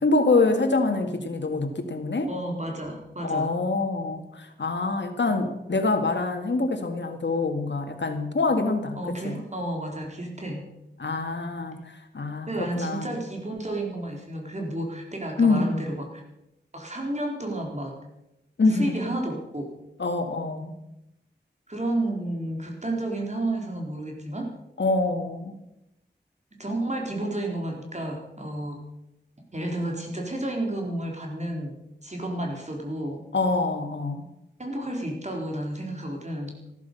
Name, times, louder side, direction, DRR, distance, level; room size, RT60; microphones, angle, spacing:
voice 1, 0.0-2.3 3.2-9.0 9.2-9.4 11.0-13.2 15.4-15.9 18.6-19.0 20.0-20.7 24.8-25.6 33.3-34.3, left 3 dB, 80° left, 5 dB, 2.0 m, -25 dB
voice 2, 2.3-3.6 9.0-10.7 11.5-11.6 12.5-16.1 16.7-18.0 18.7-19.7 21.7-24.5 26.6-28.8 29.5-33.2 34.6-36.6, right 1 dB, 40° right, 1 dB, 4.2 m, -31 dB
14.0 x 13.0 x 6.9 m, 0.88 s
wide cardioid pair, 75°, 18 cm